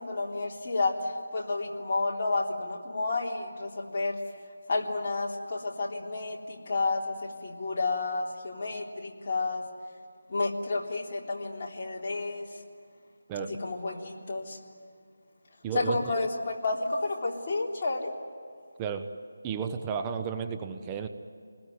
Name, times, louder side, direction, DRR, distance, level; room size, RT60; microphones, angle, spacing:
voice 1, 0.0-4.2 4.7-9.6 10.3-12.5 13.4-14.6 15.7-18.1, left 3 dB, 40° left, -2 dB, 3.6 m, -31 dB
voice 2, 15.6-16.2 18.8-19.1 19.4-21.1, right 6 dB, 15° right, 6 dB, 1.0 m, -33 dB
27.5 x 21.0 x 9.6 m, 2.3 s
figure-of-eight pair, 165°, 0 cm